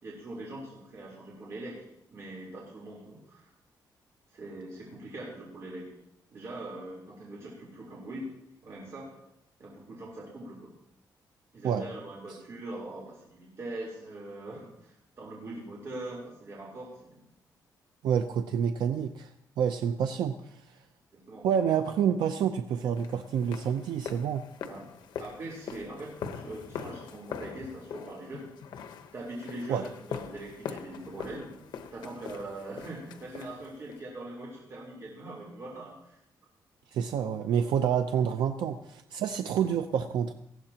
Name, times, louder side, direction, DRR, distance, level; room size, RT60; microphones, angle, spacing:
voice 1, 0.0-3.5 4.3-5.9 6.3-8.3 8.6-9.1 9.6-10.7 11.5-17.2 21.1-21.5 24.7-24.8 25.2-28.5 29.1-31.5 31.9-36.2, right 2 dB, 40° right, -4 dB, 3.7 m, -42 dB
voice 2, 18.0-20.8 21.4-24.4 29.7-29.8 36.9-40.3, right 8 dB, 85° right, 7 dB, 0.6 m, -28 dB
sound 1, 22.9-34.1, left 7 dB, 85° left, 1.1 m, -42 dB
19.0 x 15.0 x 2.9 m, 0.79 s
cardioid pair, 140°, 7 cm